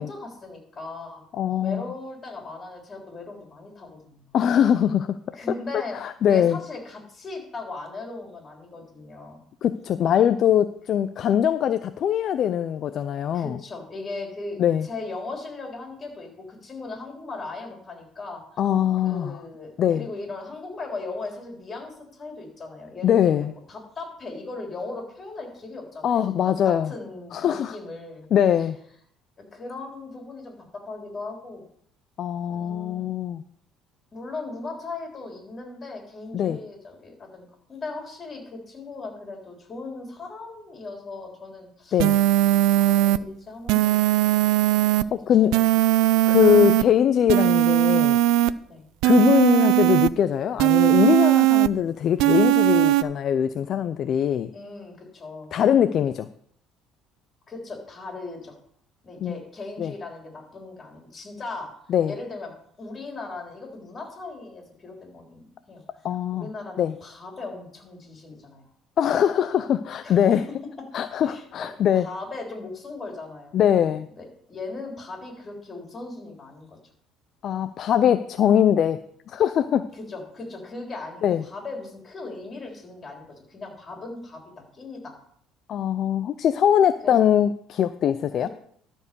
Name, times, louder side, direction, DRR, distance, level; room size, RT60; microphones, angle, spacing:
voice 1, 0.0-1.2 1.6-4.3 5.3-6.0 6.3-9.4 13.3-18.4 19.0-26.4 26.7-28.3 29.4-31.6 32.5-33.1 34.1-42.0 42.7-44.0 44.4-44.5 45.0-45.1 45.4-45.6 48.7-48.8 54.5-55.5 57.5-58.6 59.0-61.7 62.1-62.5 62.8-68.7 70.0-70.4 71.2-71.7 71.9-73.6 74.2-76.8 79.9-85.2 87.0-87.3 88.4-88.5, left 3 dB, 25° left, 1 dB, 3.4 m, -38 dB
voice 2, 1.4-1.8 4.3-5.2 5.9-6.6 9.6-13.6 14.6-14.9 18.6-19.4 19.8-20.1 23.0-23.5 26.0-26.9 27.3-27.7 28.3-28.8 32.2-33.4 36.3-36.6 41.9-42.2 45.1-45.6 46.3-48.2 49.0-54.5 55.5-56.3 59.2-59.3 59.8-59.9 61.9-62.1 66.0-66.5 66.8-66.9 69.0-70.4 70.9-72.1 73.5-74.1 77.4-79.0 79.3-79.9 81.2-81.4 85.7-88.5, left 9 dB, 50° left, 11 dB, 0.4 m, -22 dB
sound 1, 42.0-43.2 43.7-45.0 45.5-46.8 47.3-48.5 49.0-50.1 50.6-51.7 52.2-53.0, right 15 dB, 80° right, 0.4 m, -19 dB
12.5 x 4.5 x 6.7 m, 0.65 s
cardioid pair, 125°, 0 cm